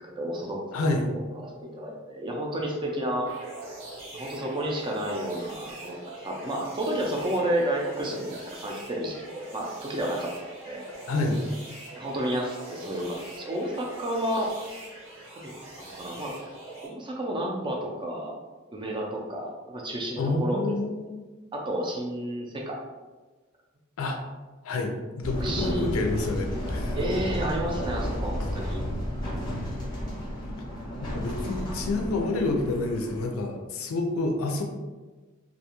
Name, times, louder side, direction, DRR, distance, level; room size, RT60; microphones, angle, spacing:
voice 1, 0.2-0.6 1.1-3.3 4.1-10.9 11.9-14.8 15.4-15.5 15.8-16.3 16.8-18.3 18.7-20.6 21.5-22.8 25.4-25.9 26.9-28.8, right 1 dB, 25° right, 0 dB, 0.4 m, -31 dB
voice 2, 0.7-1.1 11.1-11.4 20.2-21.3 24.0-24.2 24.6-27.0 28.4-28.5 31.0-34.6, left 2 dB, 90° left, 3 dB, 0.4 m, -28 dB
sound 1, 3.3-16.9, right 2 dB, 75° right, 1.0 m, -43 dB
sound 2, 25.2-33.3, equal, 20° left, 0.7 m, -32 dB
2.4 x 2.3 x 2.9 m, 1.3 s
head